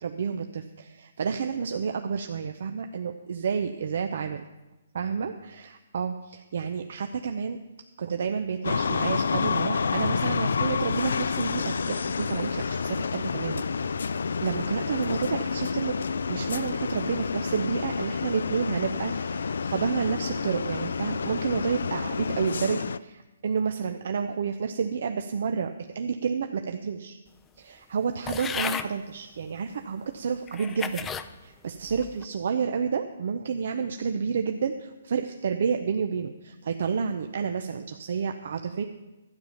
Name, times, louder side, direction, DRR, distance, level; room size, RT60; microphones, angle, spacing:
voice 1, 0.0-4.4 4.9-7.6 8.0-16.0 16.3-27.2 27.6-31.1 31.4-38.8, right 6 dB, 60° right, 6 dB, 0.7 m, -30 dB
sound 1, 8.6-23.0, left 5 dB, 75° left, 0.4 m, -29 dB
sound 2, 28.3-28.9 29.7-29.8 30.5-31.3 31.9-32.3, left 7 dB, 15° left, 0.5 m, -33 dB
12.5 x 8.9 x 5.7 m, 1.1 s
hypercardioid pair, 145°, 0 cm